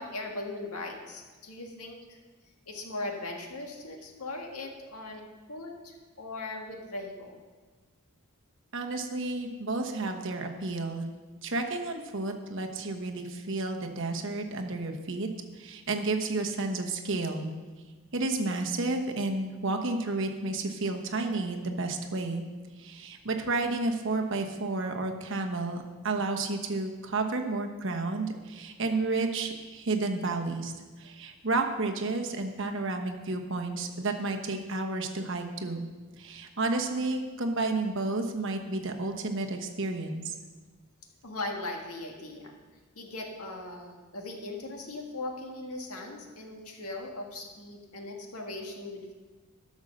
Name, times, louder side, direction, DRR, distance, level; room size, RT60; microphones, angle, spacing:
voice 1, 0.0-2.2 2.7-7.4 41.2-42.5 42.9-49.1, left 2 dB, 85° left, 2 dB, 1.8 m, -39 dB
voice 2, 8.7-11.1 11.4-15.3 15.6-17.5 18.1-22.4 22.8-30.7 31.0-35.9 36.2-40.4, right 3 dB, 55° right, 4 dB, 1.1 m, -31 dB
12.5 x 6.4 x 6.5 m, 1.3 s
head